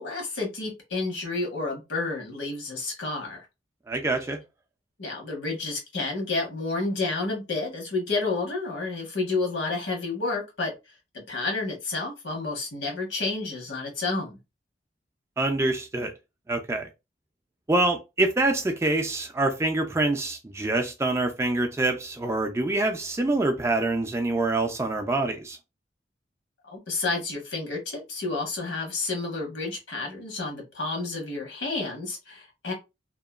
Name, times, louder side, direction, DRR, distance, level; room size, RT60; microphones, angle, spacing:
voice 1, 0.0-3.5 5.0-10.7 11.1-14.4 26.7-32.7, left 3 dB, 80° left, 1.2 m, -30 dB
voice 2, 3.9-4.4 15.4-16.1 16.5-16.9 17.7-25.6, right 2 dB, 15° right, 0.3 m, -25 dB
2.8 x 2.3 x 2.3 m
head